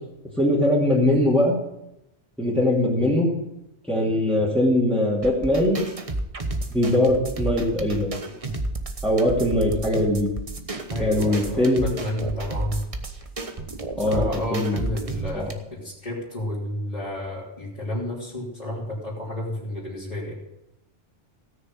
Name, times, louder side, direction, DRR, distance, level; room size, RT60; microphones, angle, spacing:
voice 1, 0.4-1.6 2.4-3.3 3.9-5.8 6.7-8.1 9.0-10.3 11.0-11.9 14.0-14.9 15.3-15.5, left 1 dB, ahead, -6 dB, 2.7 m, -21 dB
sound 1, 5.2-15.5, right 2 dB, 30° right, 1.1 m, -32 dB
voice 2, 10.9-12.8 14.1-20.3, left 1 dB, 30° left, -9 dB, 3.5 m, -31 dB
17.0 x 6.7 x 7.5 m, 0.88 s
omnidirectional pair, 1.2 m